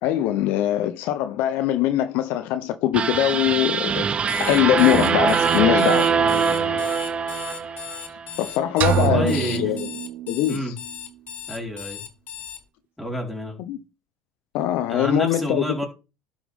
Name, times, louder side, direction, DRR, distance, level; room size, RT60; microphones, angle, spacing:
voice 1, 0.0-4.1 4.4-6.1 8.4-9.8 10.3-10.7 13.7-13.8 14.5-15.8, left 12 dB, 65° left, 0.9 m, -22 dB
sound 1, 2.9-8.2, right 6 dB, 35° right, 0.8 m, -22 dB
Alarm, 4.2-12.6, left 10 dB, 45° left, 1.6 m, -38 dB
voice 2, 6.0-6.8 8.9-9.7 10.5-10.8 11.5-12.0 13.0-13.6 14.9-15.9, equal, 5° left, 4.8 m, -29 dB
sound 2, 8.8-10.7, right 9 dB, 55° right, 1.0 m, -25 dB
12.0 x 7.4 x 3.7 m
supercardioid pair, 95°, 3 cm